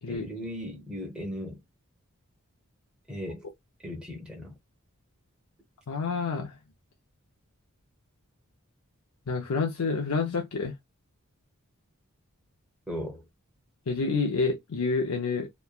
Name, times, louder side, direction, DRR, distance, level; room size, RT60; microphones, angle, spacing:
voice 1, 0.1-1.6 3.1-3.5 3.8-4.5 12.9-13.2, equal, 5° right, 0.9 m, -37 dB
voice 2, 5.9-6.6 9.3-10.7 13.9-15.5, left 4 dB, 85° left, 0.6 m, -28 dB
3.1 x 2.2 x 2.3 m
head